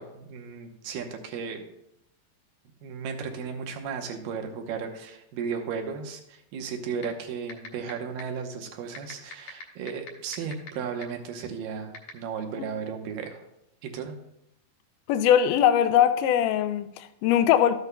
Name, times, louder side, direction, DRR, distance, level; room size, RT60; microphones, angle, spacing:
voice 1, 0.0-1.6 2.8-13.4 13.8-14.2, right 6 dB, 75° right, 2.5 m, -35 dB
sound 1, 7.0-7.1 7.5-7.9 8.2-8.3 8.9-10.7 11.0-11.1 11.9-12.1, left 6 dB, 65° left, 2.1 m, -38 dB
voice 2, 15.1-17.7, left 10 dB, 80° left, 1.9 m, -21 dB
13.5 x 8.2 x 2.2 m
omnidirectional pair, 4.2 m